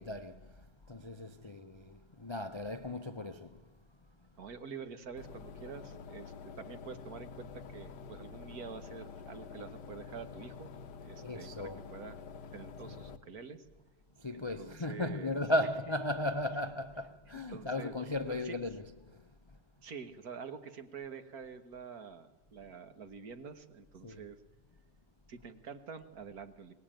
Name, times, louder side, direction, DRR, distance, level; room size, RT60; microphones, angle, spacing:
voice 1, 0.0-3.7 11.2-11.9 12.9-13.0 14.2-19.6 24.0-24.3, left 1 dB, 45° left, 0.3 m, -36 dB
voice 2, 4.4-10.7 11.0-12.2 12.5-13.7 14.3-15.4 17.5-17.9 18.3-18.6 19.8-24.4 25.3-26.7, right 6 dB, 60° right, 1.9 m, -47 dB
sound 1, 5.2-13.2, left 5 dB, 75° left, 1.7 m, -48 dB
23.0 x 19.5 x 9.0 m
omnidirectional pair, 1.9 m